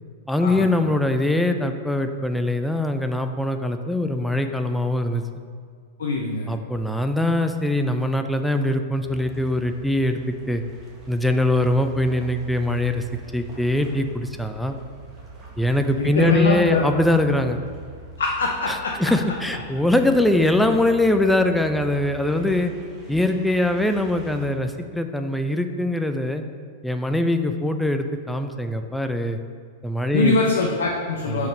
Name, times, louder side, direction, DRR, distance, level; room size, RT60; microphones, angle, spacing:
voice 1, 0.3-5.2 6.5-10.2 10.5-10.6 11.1-13.0 13.3-14.8 15.6-17.6 18.7-22.7 23.1-26.4 26.8-29.4 29.8-30.4 31.3-31.5, left 1 dB, 5° left, 6 dB, 0.4 m, -22 dB
voice 2, 6.0-6.5 15.9-16.8 18.2-18.7 30.1-31.5, left 3 dB, 65° left, 0 dB, 0.7 m, -23 dB
sound 1, 9.0-24.5, right 3 dB, 25° right, 1.6 m, -43 dB
5.1 x 4.8 x 5.2 m, 2.1 s
figure-of-eight pair, 95°, 0 cm